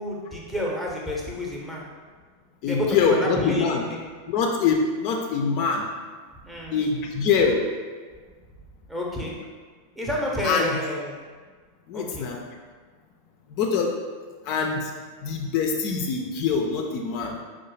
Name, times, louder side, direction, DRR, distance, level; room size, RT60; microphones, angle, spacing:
voice 1, 0.0-1.9 2.6-4.0 6.4-6.8 8.9-9.5 10.0-11.2 11.9-12.3, left 1 dB, 10° right, -3 dB, 0.6 m, -30 dB
voice 2, 2.6-3.8 4.3-5.9 6.7-7.6 10.4-10.8 11.9-12.4 13.5-13.9 14.5-14.9 15.2-17.4, left 5 dB, 45° left, 1 dB, 0.3 m, -24 dB
4.5 x 2.0 x 3.0 m, 1.5 s
figure-of-eight pair, 90°, 0 cm